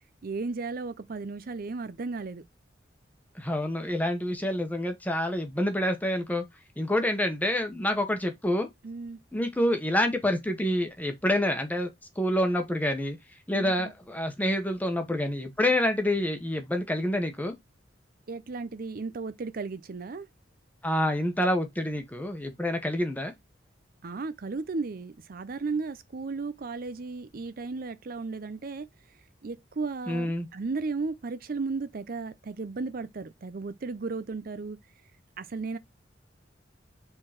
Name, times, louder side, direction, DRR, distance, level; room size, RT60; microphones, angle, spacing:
voice 1, 0.2-2.4 8.8-9.2 13.5-13.9 18.3-20.3 24.0-28.9 29.4-34.8 35.4-35.8, right 4 dB, 50° right, 0.5 m, -35 dB
voice 2, 3.3-6.4 6.8-8.7 9.3-11.9 12.2-13.2 13.5-17.5 20.8-23.3 30.1-30.5, left 1 dB, 10° left, 1.2 m, -27 dB
5.2 x 3.9 x 5.8 m
head